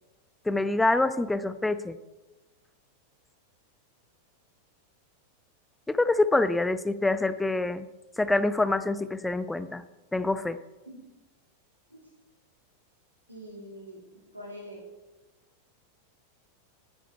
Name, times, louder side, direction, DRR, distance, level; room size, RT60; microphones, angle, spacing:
voice 1, 0.4-2.0 5.9-7.9 8.2-9.8 10.1-10.6, left 2 dB, 5° left, 14 dB, 0.6 m, -26 dB
voice 2, 13.3-14.8, equal, 85° right, -3 dB, 3.0 m, -44 dB
12.5 x 9.1 x 4.4 m, 1.1 s
figure-of-eight pair, 90°, 0 cm